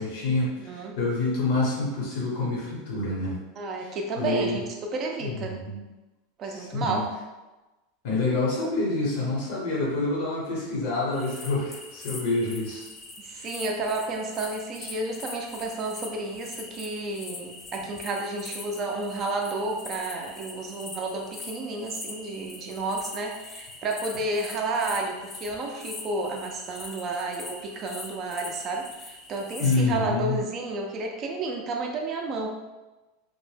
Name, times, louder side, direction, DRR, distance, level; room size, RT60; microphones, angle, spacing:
voice 1, 0.0-3.3 3.8-4.6 5.2-5.8 6.5-7.1 8.0-12.9 13.3-13.5 29.6-30.4, left 2 dB, 70° left, -4 dB, 0.9 m, -27 dB
voice 2, 0.6-1.0 3.6-5.6 6.4-7.1 13.2-32.5, right 2 dB, 35° right, 1 dB, 0.4 m, -31 dB
sound 1, 11.1-29.8, left 3 dB, 25° left, 0.4 m, -42 dB
2.1 x 2.0 x 3.2 m, 1.1 s
supercardioid pair, 125°, 0 cm